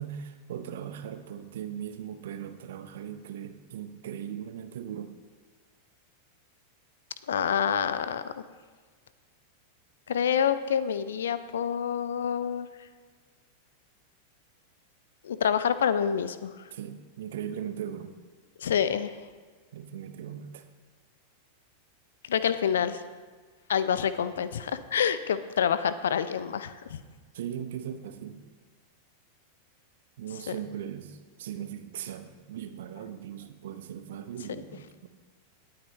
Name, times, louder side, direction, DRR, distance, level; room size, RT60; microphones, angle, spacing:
voice 1, 0.0-5.1 16.7-18.1 19.7-20.7 27.3-28.4 30.2-35.1, right 9 dB, 60° right, 9 dB, 0.8 m, -39 dB
voice 2, 7.3-8.4 10.1-12.7 15.2-16.5 18.6-19.1 22.2-23.0 23.7-27.0 30.5-30.6, left 8 dB, 65° left, 14 dB, 0.5 m, -27 dB
18.0 x 8.7 x 3.1 m, 1.5 s
figure-of-eight pair, 90°, 0 cm